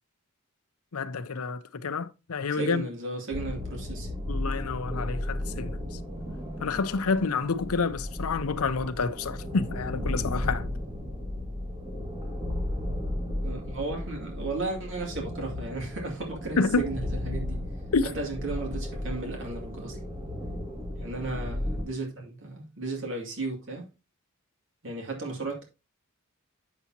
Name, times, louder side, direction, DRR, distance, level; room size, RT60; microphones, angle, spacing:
voice 1, 0.9-2.8 4.3-5.8 6.6-10.7 16.6-16.8 17.9-18.1, left 4 dB, 85° left, 0.7 m, -28 dB
voice 2, 2.5-4.1 13.4-17.6 18.0-20.0 21.0-23.8 24.8-25.6, right 3 dB, 60° right, 2.4 m, -35 dB
sound 1, 3.3-21.8, left 1 dB, 20° right, 1.7 m, -34 dB
8.4 x 6.9 x 2.8 m
head